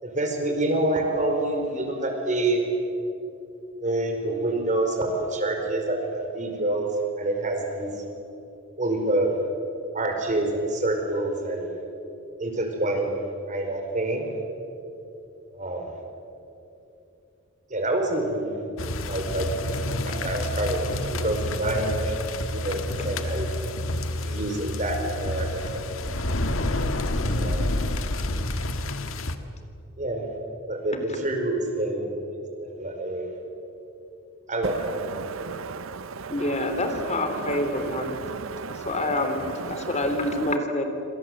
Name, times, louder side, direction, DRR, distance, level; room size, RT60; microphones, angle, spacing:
voice 1, 0.0-2.7 3.8-6.9 7.2-7.9 8.8-9.3 9.9-11.7 12.4-14.3 15.5-15.9 17.7-18.5 19.1-19.5 20.1-22.2 22.5-23.5 24.2-26.1 27.3-27.8 30.0-30.2 30.7-33.3 34.5-35.0, right 2 dB, 40° right, 5.0 m, -27 dB
sound 1, 18.8-29.4, left 1 dB, 75° left, 1.8 m, -29 dB
voice 2, 35.2-36.3 38.0-38.9 39.7-39.9, right 5 dB, 70° right, 0.6 m, -36 dB
voice 3, 36.3-38.2 38.7-40.8, left 1 dB, 35° left, 3.4 m, -27 dB
27.5 x 26.5 x 8.0 m
head